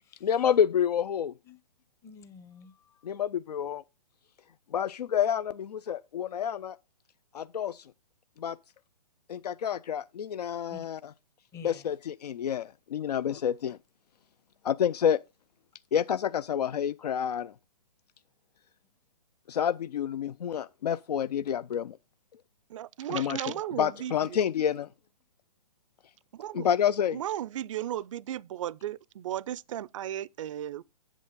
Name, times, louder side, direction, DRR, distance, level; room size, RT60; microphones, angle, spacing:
voice 1, 0.2-1.3 3.0-3.8 4.7-6.8 7.3-7.8 8.4-8.6 9.3-11.0 11.6-13.8 14.6-15.2 15.9-17.5 19.5-22.0 23.1-23.4 23.8-24.9 26.5-27.2, left 8 dB, 85° left, 0.4 m, -28 dB
voice 2, 2.0-3.2 10.7-10.9 11.5-11.9 13.3-13.4 23.1-23.4, left 6 dB, 15° left, 0.6 m, -49 dB
voice 3, 22.7-24.4 26.3-26.7 27.1-30.8, right 12 dB, 55° right, 0.4 m, -35 dB
8.2 x 7.5 x 3.7 m
hypercardioid pair, 145°, 20 cm